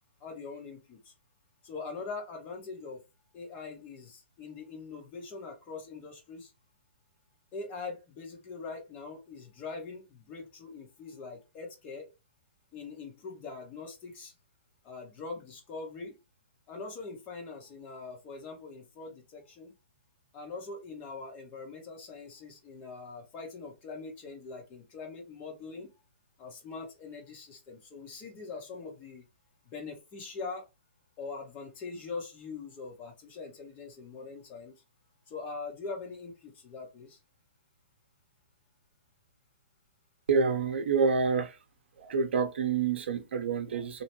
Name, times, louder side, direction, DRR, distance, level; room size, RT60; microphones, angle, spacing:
voice 1, 0.2-1.1 1.6-3.0 3.3-6.5 7.5-12.1 12.7-14.3 14.8-16.2 16.7-19.7 20.3-25.9 26.4-29.2 29.7-30.6 31.2-34.8 35.3-37.2, left 4 dB, 25° left, 1.2 m, -42 dB
voice 2, 40.3-41.6 42.0-44.0, right 5 dB, 70° right, 0.7 m, -27 dB
2.9 x 2.1 x 3.0 m
hypercardioid pair, 135°, 6 cm